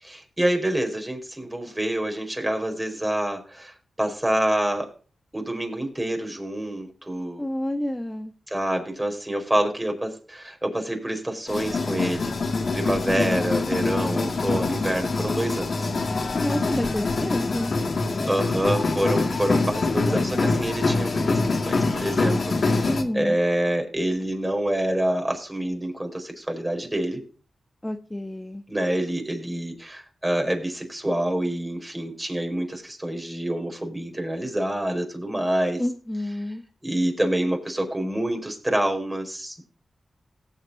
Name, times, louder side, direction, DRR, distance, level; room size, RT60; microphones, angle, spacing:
voice 1, 0.0-4.9 5.3-7.4 8.5-12.3 12.7-15.9 18.2-27.2 28.7-35.8 36.5-36.6 36.8-39.6, right 1 dB, 20° right, 4 dB, 4.6 m, -27 dB
voice 2, 7.4-8.3 16.3-17.7 22.8-23.4 27.8-28.6 35.8-36.6, left 1 dB, 15° left, 5 dB, 1.2 m, -29 dB
sound 1, 11.5-23.0, left 3 dB, 60° left, 2.1 m, -25 dB
18.0 x 8.1 x 2.7 m, 0.39 s
cardioid pair, 45°, 0 cm